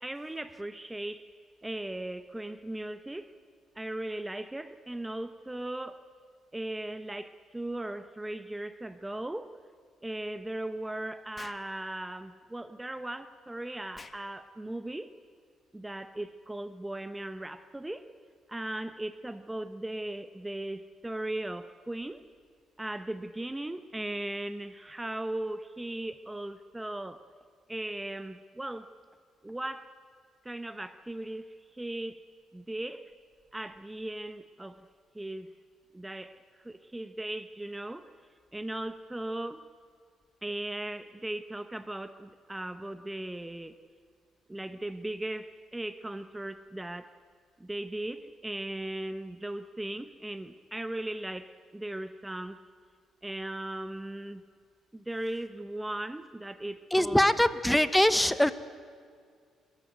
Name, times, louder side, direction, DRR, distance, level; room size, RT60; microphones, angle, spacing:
voice 1, 0.0-1.3 1.6-3.3 3.7-6.0 6.5-9.5 10.0-15.1 15.7-18.1 18.5-22.2 22.8-27.2 27.7-28.9 29.4-29.9 30.4-32.2 32.5-33.1 33.5-34.9 35.1-35.5 35.9-38.1 38.5-39.6 40.4-43.8 44.5-47.2 47.6-52.6 53.2-54.4 54.9-57.2, right 1 dB, 10° right, 11 dB, 0.9 m, -38 dB
Explosion, 11.4-11.7 13.9-14.2, left 4 dB, 30° left, 1.5 m, -47 dB
voice 2, 56.9-58.5, left 1 dB, 5° left, 13 dB, 1.1 m, -23 dB
29.0 x 14.5 x 9.1 m, 2.1 s
cardioid pair, 85°, 0 cm